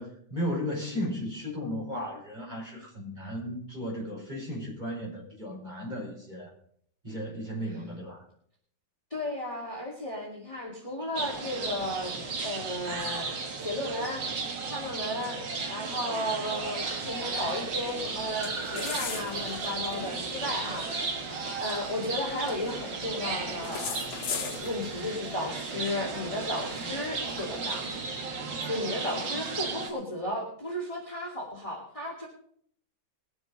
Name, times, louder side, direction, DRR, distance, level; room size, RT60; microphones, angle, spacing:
voice 1, 0.0-6.5 7.0-8.2, equal, 25° right, -3 dB, 5.3 m, -35 dB
voice 2, 9.1-12.1 12.4-14.3 14.7-15.4 15.7-21.3 21.6-27.9 28.6-32.3, left 1 dB, 15° left, -2 dB, 2.6 m, -34 dB
sound 1, 11.2-29.9, right 4 dB, 75° right, 2.3 m, -35 dB
sound 2, 16.7-28.5, left 6 dB, 70° left, 2.0 m, -43 dB
21.0 x 7.1 x 5.3 m, 0.63 s
omnidirectional pair, 2.0 m